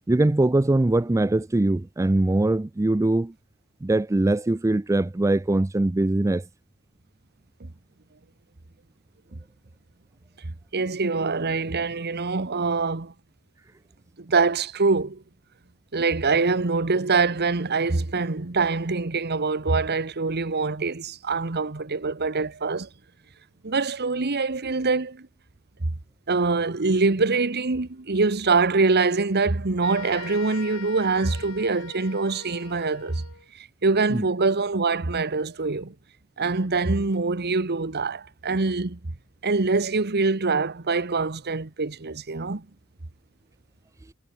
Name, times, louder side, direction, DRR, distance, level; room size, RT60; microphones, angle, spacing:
voice 1, 0.1-3.3 3.8-6.4 34.1-34.3, right 2 dB, 15° right, 0.4 m, -22 dB
voice 2, 10.4-13.1 14.2-15.2 15.9-22.9 23.6-25.3 26.3-33.2 33.6-35.9 36.4-39.0 39.4-42.6, right 4 dB, 50° right, 1.2 m, -24 dB
sound 1, 29.8-33.5, left 5 dB, 85° left, 4.0 m, -42 dB
head